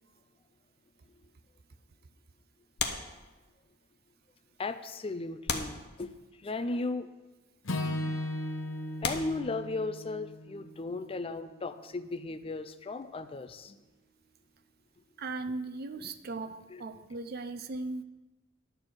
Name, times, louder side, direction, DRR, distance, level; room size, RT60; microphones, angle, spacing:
sound 1, 2.8-3.8 4.6-4.7 5.5-6.5 7.5-7.7 8.4-8.5 9.0-10.2 12.1-13.9 14.2-14.4, left 6 dB, 60° left, 0.9 m, -38 dB
voice 1, 4.6-7.1 9.0-13.8 16.7-16.8, left 3 dB, 30° left, 11 dB, 0.4 m, -36 dB
Acoustic guitar / Strum, 7.6-12.0, left 1 dB, 85° left, 1.0 m, -37 dB
voice 2, 15.2-18.0, right 3 dB, 50° right, 11 dB, 0.6 m, -38 dB
10.5 x 4.5 x 7.8 m, 1.1 s
head